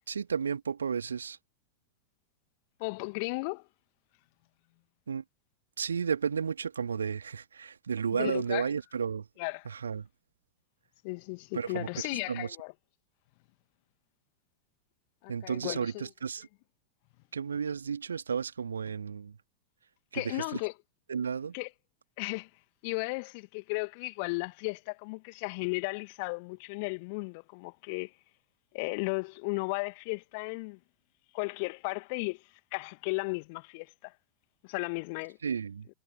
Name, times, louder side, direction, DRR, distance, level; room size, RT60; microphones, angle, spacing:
voice 1, 0.1-1.4 5.1-5.2 5.8-9.3 9.7-10.1 11.5-12.6 15.3-16.5 17.3-19.4 20.1-20.6 21.1-21.5 35.4-35.9, right 6 dB, 70° right, 2.2 m, -33 dB
voice 2, 2.8-3.6 8.2-8.7 9.4-9.6 11.0-12.7 15.2-16.1 20.1-20.7 21.5-21.7 22.2-22.5 22.8-28.1 28.7-30.8 31.3-32.4 32.7-34.1 34.6-35.4, left 31 dB, 45° left, 2.1 m, -35 dB
figure-of-eight pair, 90°, 0 cm